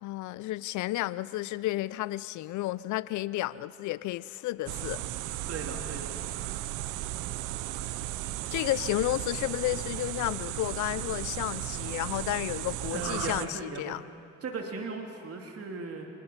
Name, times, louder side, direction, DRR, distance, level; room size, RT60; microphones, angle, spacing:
voice 1, 0.0-5.0 8.5-14.0, left 16 dB, 70° left, 18 dB, 0.6 m, -32 dB
sound 1, 4.7-13.5, right 15 dB, 80° right, 0.7 m, -35 dB
voice 2, 5.5-6.1 12.9-14.0 14.4-16.1, right 4 dB, 50° right, 2 dB, 2.7 m, -37 dB
26.0 x 20.0 x 5.8 m, 2.6 s
hypercardioid pair, 50°, 31 cm